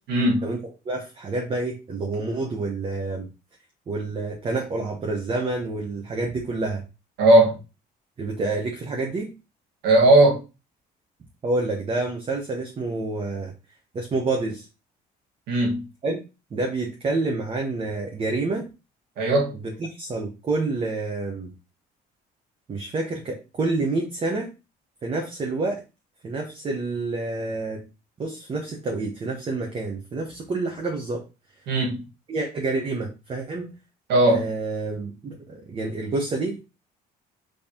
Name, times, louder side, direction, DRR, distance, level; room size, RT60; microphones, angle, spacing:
voice 1, 0.1-0.5 7.2-7.6 9.8-10.4 15.5-15.8 19.2-19.5 31.7-32.0 34.1-34.4, right 1 dB, 80° right, 1.7 m, -17 dB
voice 2, 0.8-3.3 3.9-6.8 8.2-9.3 11.4-13.5 13.9-14.6 16.0-16.2 16.5-18.7 19.5-21.5 22.7-24.5 25.0-25.8 26.2-27.8 28.2-31.2 32.3-33.7 34.3-36.6, right 3 dB, 35° right, 1.0 m, -28 dB
5.5 x 3.2 x 2.9 m
cardioid pair, 110°, 17 cm